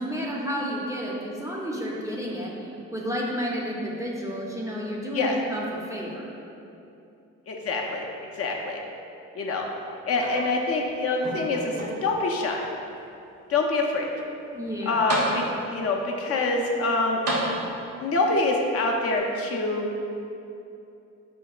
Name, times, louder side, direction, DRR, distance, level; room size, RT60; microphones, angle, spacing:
voice 1, 0.0-2.5 2.9-5.6 5.9-6.3 14.5-15.1, equal, 10° right, -4 dB, 0.4 m, -31 dB
voice 2, 7.5-8.1 8.4-8.8 9.4-9.7 10.1-12.6 13.5-14.1 14.9-17.2 18.0-19.9, left 3 dB, 50° left, 0 dB, 0.4 m, -25 dB
sound 1, 10.2-10.8 11.2-12.2 13.0-13.1 14.6-14.7 15.1-15.9 17.3-18.1 19.2-19.3, right 1 dB, 80° right, 0.7 m, -31 dB
5.1 x 2.1 x 2.3 m, 2.8 s
cardioid pair, 90°, 30 cm